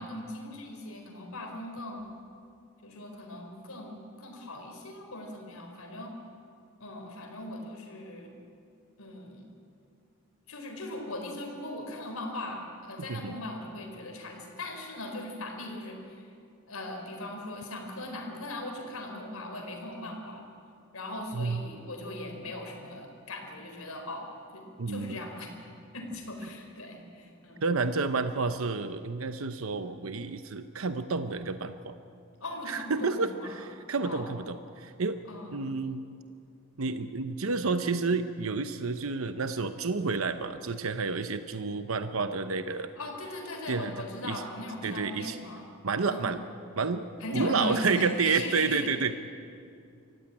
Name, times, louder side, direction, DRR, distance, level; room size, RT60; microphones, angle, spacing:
voice 1, 0.0-2.0 2.8-6.1 6.8-8.3 9.0-9.5 10.5-16.3 16.7-20.4 20.9-25.5 25.9-27.7 32.4-33.7 34.0-34.3 35.3-35.7 42.9-45.7 46.1-46.3 47.2-48.9, left 1 dB, 85° left, 2 dB, 4.3 m, -39 dB
voice 2, 21.3-21.6 24.8-25.2 27.6-31.9 32.7-35.2 35.5-36.0 36.8-42.9 43.7-43.9 44.2-44.4 44.8-45.4 45.8-46.4 46.8-47.0 47.3-49.2, right 4 dB, 70° right, 9 dB, 0.8 m, -30 dB
24.5 x 15.0 x 9.8 m, 2.5 s
head